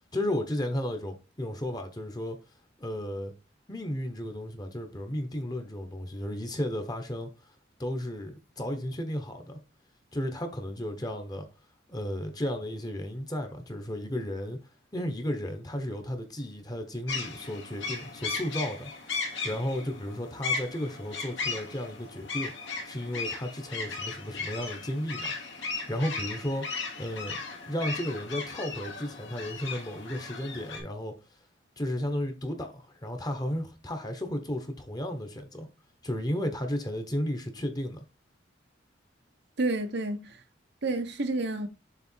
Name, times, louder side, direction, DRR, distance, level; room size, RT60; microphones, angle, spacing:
voice 1, 0.1-2.4 2.8-3.3 3.7-7.3 7.8-9.6 10.1-11.5 11.9-14.6 14.9-18.9 19.4-22.5 22.8-25.3 25.9-26.6 27.0-31.1 31.8-35.7 36.0-38.0, left 1 dB, 20° left, 1.1 m, -33 dB
sound 1, 17.1-30.8, left 4 dB, 80° left, 2.6 m, -36 dB
voice 2, 39.6-40.4 40.8-41.7, right 2 dB, 60° right, 0.9 m, -29 dB
6.9 x 3.3 x 4.6 m
head